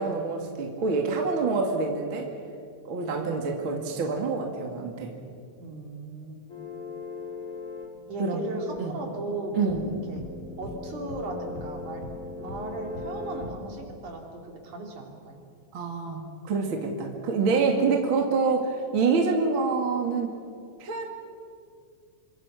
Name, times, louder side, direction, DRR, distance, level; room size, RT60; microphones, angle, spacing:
voice 1, 0.0-2.3 2.8-5.1 8.2-8.4 8.8-8.9 9.5-9.8 15.7-20.3 20.8-21.0, right 4 dB, 40° right, 1 dB, 2.7 m, -26 dB
voice 2, 5.6-6.4 8.1-10.2 10.6-12.1 12.4-15.4, right 2 dB, 60° right, 1 dB, 4.4 m, -37 dB
sound 1, 6.5-13.7, left 3 dB, 25° left, 3.3 m, -39 dB
27.5 x 24.5 x 6.3 m, 2.3 s
omnidirectional pair, 3.9 m